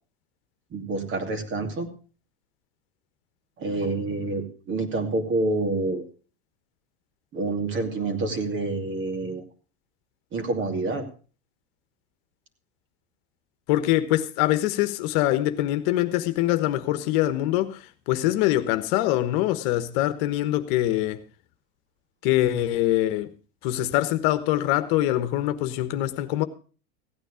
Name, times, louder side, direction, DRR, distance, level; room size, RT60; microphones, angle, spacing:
voice 1, 0.7-1.9 3.6-6.0 7.3-9.4 10.3-11.1, right 2 dB, 35° right, 2.6 m, -27 dB
voice 2, 13.7-21.2 22.2-23.3 23.6-26.4, left 14 dB, 60° left, 1.3 m, -24 dB
16.0 x 9.3 x 5.0 m
supercardioid pair, 125°, 32 cm